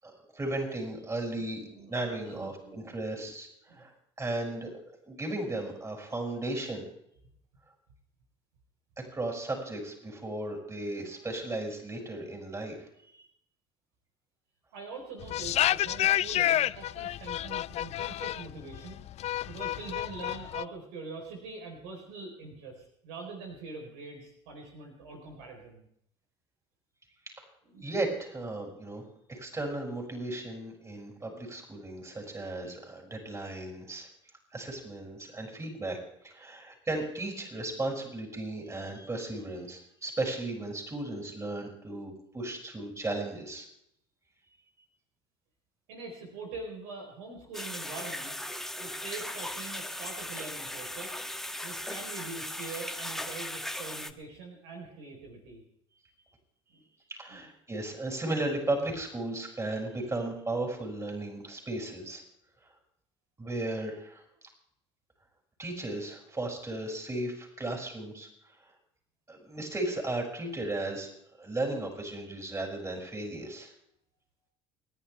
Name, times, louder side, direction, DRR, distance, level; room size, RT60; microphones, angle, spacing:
voice 1, 0.0-3.9 4.2-6.9 9.0-12.8 13.1-13.2 27.8-29.0 29.3-34.1 34.5-36.0 36.2-43.6 57.1-62.2 63.4-64.2 65.6-68.3 69.3-71.1 71.4-73.7, right 2 dB, 20° right, 1 dB, 7.0 m, -35 dB
voice 2, 1.5-2.8 3.2-3.3 3.7-3.9 14.7-19.0 19.5-25.9 27.6-27.9 45.9-48.3 48.8-51.2 51.6-55.6 56.7-56.8 57.3-57.5, right 3 dB, 80° right, 1 dB, 4.1 m, -44 dB
sound 1, 15.2-20.6, left 13 dB, 55° left, 0.5 m, -29 dB
sound 2, 47.5-54.1, left 1 dB, 5° left, 1.4 m, -38 dB
28.5 x 11.0 x 3.5 m, 0.71 s
hypercardioid pair, 60°, 14 cm